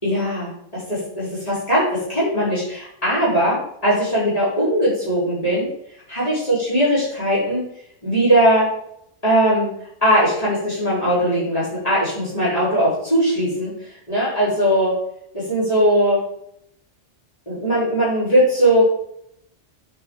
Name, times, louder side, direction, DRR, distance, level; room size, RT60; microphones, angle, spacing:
voice 1, 0.0-0.5 0.9-1.8 2.1-5.7 6.1-7.6 8.0-8.6 9.2-9.7 10.0-13.7 14.1-14.9 15.3-16.2 17.5-18.8, equal, 30° left, -11 dB, 4.2 m, -19 dB
9.2 x 5.2 x 4.7 m, 0.70 s
omnidirectional pair, 1.2 m